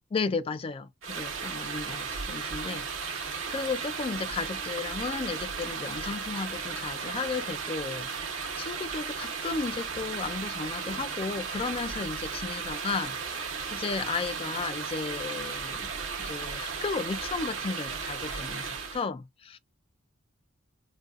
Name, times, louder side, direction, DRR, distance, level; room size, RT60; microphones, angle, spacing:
voice 1, 0.1-15.9 16.2-19.6, left 4 dB, 30° left, 0.3 m, -34 dB
sound 1, 1.0-19.1, right 5 dB, 85° right, 0.9 m, -35 dB
4.0 x 2.3 x 2.4 m
head